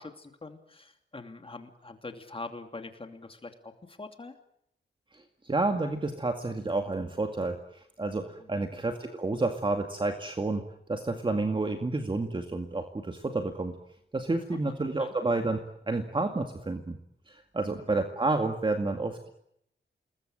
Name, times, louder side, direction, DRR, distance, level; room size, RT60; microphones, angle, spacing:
voice 1, 0.0-4.3 8.4-8.7 14.4-15.1 17.9-18.0, left 3 dB, 30° left, 6 dB, 2.8 m, -44 dB
voice 2, 5.1-10.6 10.9-13.7 14.1-15.6 15.9-17.0 17.3-19.3, right 2 dB, 25° right, 5 dB, 2.1 m, -30 dB
28.5 x 21.5 x 8.8 m, 0.75 s
wide cardioid pair, 145°, 20 cm